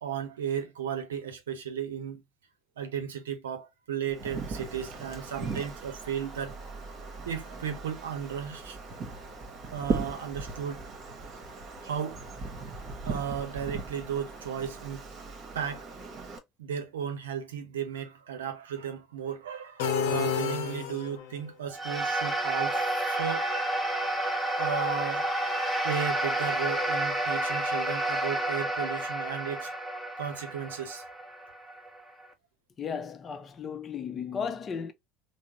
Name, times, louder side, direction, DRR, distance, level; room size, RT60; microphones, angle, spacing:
voice 1, 0.0-2.2 2.8-6.6 7.3-8.8 9.7-10.8 11.8-12.2 12.8-15.1 15.5-16.0 16.6-23.6 23.9-24.2 24.6-25.3 25.8-29.7 30.2-31.0, right 8 dB, 80° right, 0.6 m, -35 dB
Wind, 4.1-16.4, right 4 dB, 45° right, 1.0 m, -38 dB
sound 1, 19.8-21.4, left 6 dB, 75° left, 0.7 m, -29 dB
sound 2, 21.7-32.3, right 1 dB, 5° left, 1.0 m, -30 dB
voice 2, 32.8-34.9, left 6 dB, 35° left, 0.6 m, -35 dB
3.6 x 2.1 x 2.9 m
hypercardioid pair, 70°, 0 cm